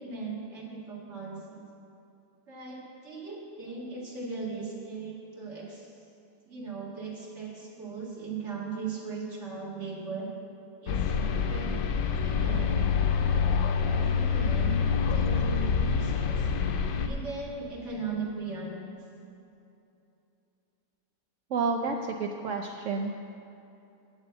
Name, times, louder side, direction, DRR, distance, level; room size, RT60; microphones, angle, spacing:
voice 1, 0.0-1.7 2.5-5.9 6.5-10.3 10.8-11.8 12.2-12.9 13.8-14.8 15.1-16.5 17.0-19.0, right 4 dB, 40° right, -4 dB, 2.1 m, -38 dB
sound 1, 10.9-17.1, left 6 dB, 75° left, 1.3 m, -26 dB
voice 2, 21.5-23.1, right 4 dB, 75° right, 3 dB, 0.6 m, -30 dB
8.3 x 7.4 x 7.8 m, 2.7 s
omnidirectional pair, 1.9 m